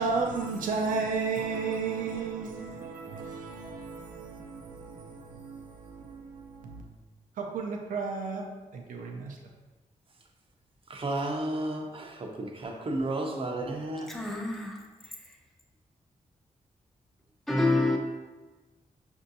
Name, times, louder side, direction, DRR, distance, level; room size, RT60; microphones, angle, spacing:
voice 1, 0.0-6.8 7.4-8.4 8.7-9.4, right 4 dB, 85° right, 0.5 m, -33 dB
voice 2, 10.9-12.1 12.4-14.1, right 2 dB, 45° right, 0.6 m, -32 dB
voice 3, 14.1-14.8 17.5-18.0, left 2 dB, ahead, 0.6 m, -26 dB
5.5 x 2.6 x 2.6 m
cardioid pair, 75°, 13 cm